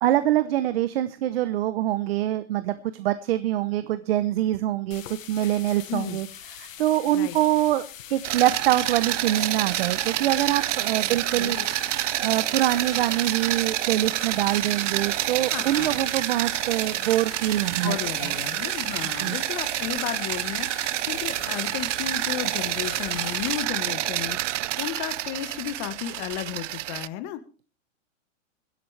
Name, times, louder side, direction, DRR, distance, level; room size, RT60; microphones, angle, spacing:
voice 1, 0.0-5.0 5.3-6.3 6.6-7.8 8.1-11.6 12.2-18.0 18.2-18.4 19.1-19.4, right 13 dB, 50° right, 13 dB, 0.9 m, -24 dB
sound 1, 4.9-23.6, left 11 dB, 85° left, 1.1 m, -43 dB
sound 2, 8.2-27.1, right 15 dB, 70° right, 0.6 m, -28 dB
voice 2, 15.5-16.0 17.8-24.4 24.8-27.4, left 12 dB, 30° left, 12 dB, 1.3 m, -33 dB
24.5 x 11.0 x 3.3 m, 0.36 s
hypercardioid pair, 155°, 38 cm